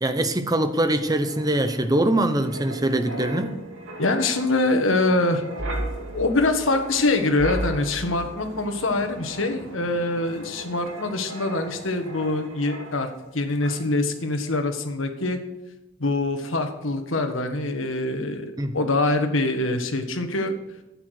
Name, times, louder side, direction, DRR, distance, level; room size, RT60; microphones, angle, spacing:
voice 1, 0.0-3.6 18.6-18.7, right 1 dB, 20° right, 0.8 m, -23 dB
Wind, 0.9-13.3 13.6-13.9, right 1 dB, 85° right, 2.7 m, -36 dB
voice 2, 4.0-5.4 6.1-13.1 13.3-15.4 16.0-20.5, left 2 dB, 85° left, 1.5 m, -24 dB
11.5 x 8.8 x 6.5 m
head